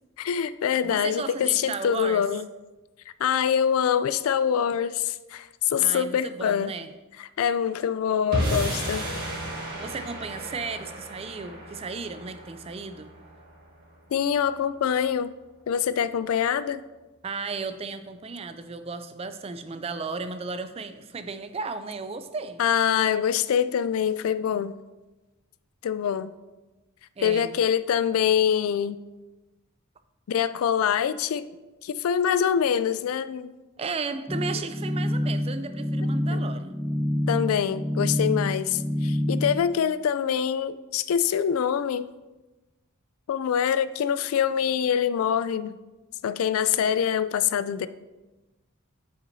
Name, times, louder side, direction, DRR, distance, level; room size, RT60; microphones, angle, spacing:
voice 1, 0.2-2.5 3.2-6.7 7.2-9.0 14.1-15.3 15.7-16.8 22.6-24.7 25.8-26.3 27.2-29.0 30.3-31.4 31.8-33.5 36.3-36.4 37.3-42.1 43.3-45.8 46.2-47.9, left 8 dB, 80° left, 14 dB, 0.3 m, -25 dB
voice 2, 0.8-2.2 5.8-6.9 9.8-13.1 17.2-22.6 27.2-27.5 33.8-36.7, right 4 dB, 30° right, 10 dB, 0.4 m, -34 dB
sound 1, 8.3-14.7, right 1 dB, 45° right, 1.7 m, -33 dB
sound 2, 34.3-39.6, left 1 dB, ahead, 0.7 m, -27 dB
8.7 x 5.9 x 2.7 m, 1.1 s
head